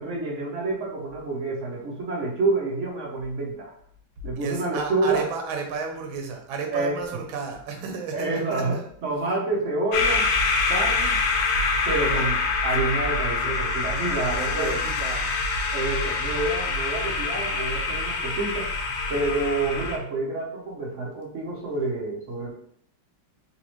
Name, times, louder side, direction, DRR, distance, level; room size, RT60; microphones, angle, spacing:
voice 1, 0.0-3.7 4.2-5.3 6.7-7.2 8.1-10.3 10.7-11.2 11.8-14.8 15.7-18.7 19.1-22.5, right 2 dB, 60° right, -3 dB, 0.8 m, -28 dB
voice 2, 4.4-8.8 12.1-12.4 13.1-13.6 14.2-15.3, right 5 dB, 85° right, 3 dB, 1.5 m, -33 dB
sound 1, 9.9-20.0, left 3 dB, 85° left, 1.4 m, -25 dB
4.1 x 2.4 x 2.9 m, 0.63 s
omnidirectional pair, 2.1 m